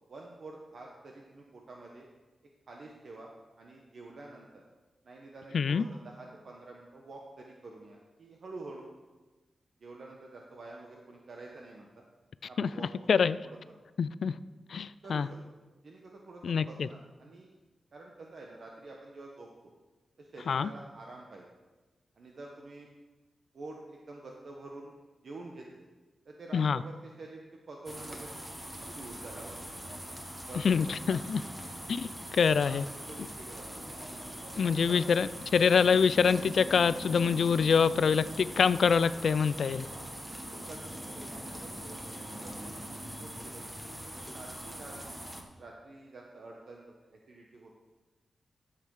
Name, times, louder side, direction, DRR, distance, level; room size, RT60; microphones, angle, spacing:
voice 1, 0.1-2.0 2.7-3.3 3.6-4.6 5.0-8.9 9.8-11.9 12.4-13.1 13.4-13.8 15.0-15.4 15.8-17.5 17.9-19.7 20.2-21.5 22.2-22.9 23.5-24.9 25.2-25.9 26.2-27.4 27.7-29.6 29.8-29.9 30.5-30.7 31.0-31.7 32.6-32.8 33.1-33.7 34.4-35.0 39.8-40.8 41.0-42.7 43.2-45.1 45.6-47.7, right 2 dB, 50° right, 0 dB, 1.1 m, -48 dB
voice 2, 5.5-5.8 12.6-12.7 13.1-13.4 14.0-14.4 14.7-15.3 16.4-16.9 20.5-20.7 26.5-26.8 30.6-31.4 31.9-32.8 34.6-39.9, left 6 dB, 60° left, 16 dB, 0.3 m, -25 dB
sound 1, 27.9-45.4, equal, 10° right, 1.1 m, -42 dB
12.5 x 7.6 x 4.8 m, 1.2 s
wide cardioid pair, 165°, 0 cm